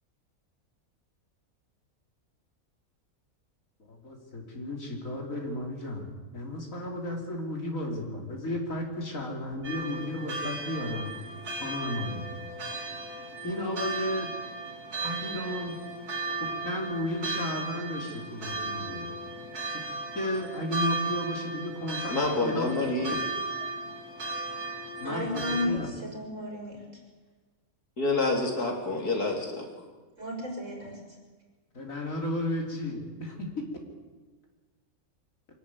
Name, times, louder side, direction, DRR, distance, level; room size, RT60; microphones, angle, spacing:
voice 1, 3.9-11.1 11.6-12.3 13.4-14.3 15.0-15.8 16.4-19.1 20.2-22.7 23.1-23.2 25.0-25.9 31.7-33.5, left 1 dB, 60° left, 1 dB, 3.6 m, -34 dB
sound 1, 9.6-25.7, right 2 dB, 85° right, 2.7 m, -36 dB
voice 2, 22.1-23.2 28.0-29.7, left 2 dB, 80° left, 1 dB, 3.8 m, -27 dB
voice 3, 25.0-26.8 30.2-31.0, left 1 dB, 55° right, 0 dB, 6.3 m, -33 dB
24.5 x 11.5 x 9.6 m, 1.3 s
omnidirectional pair, 1.6 m